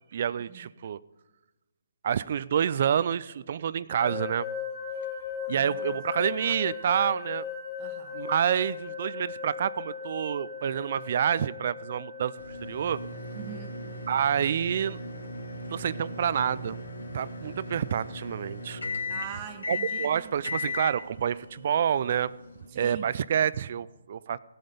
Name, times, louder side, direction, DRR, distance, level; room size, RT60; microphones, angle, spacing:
voice 1, 0.1-1.0 2.0-4.5 5.5-7.5 8.1-12.3 12.6-13.0 14.1-15.0 15.7-16.8 17.1-18.8 19.7-22.3 22.7-24.4, right 8 dB, 50° right, 19 dB, 0.4 m, -28 dB
sound 1, 3.9-18.8, left 6 dB, 15° left, 2.3 m, -39 dB
voice 2, 5.5-6.0 7.8-8.2 13.3-13.8 17.4-17.8 19.1-20.3 22.7-23.1, right 9 dB, 30° right, 5 dB, 1.2 m, -43 dB
sound 2, 12.4-22.7, left 2 dB, 80° left, 2.6 m, -37 dB
16.0 x 7.8 x 5.2 m, 1.1 s
figure-of-eight pair, 145°, 0 cm